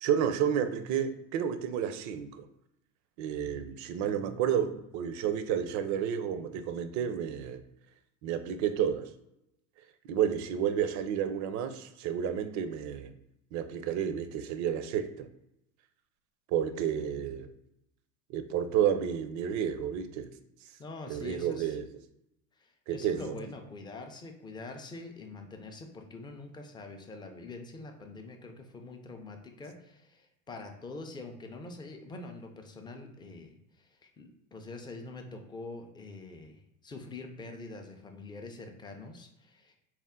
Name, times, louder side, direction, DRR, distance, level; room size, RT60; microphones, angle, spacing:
voice 1, 0.0-2.5 3.2-7.6 8.2-9.1 10.1-13.1 13.5-15.3 16.5-17.5 18.3-20.3 21.1-21.8 22.9-23.3, right 9 dB, 45° right, 10 dB, 0.5 m, -31 dB
voice 2, 20.8-21.8 22.6-39.7, left 3 dB, 10° left, 3 dB, 0.4 m, -45 dB
4.3 x 2.1 x 3.6 m, 0.84 s
supercardioid pair, 105°, 43 cm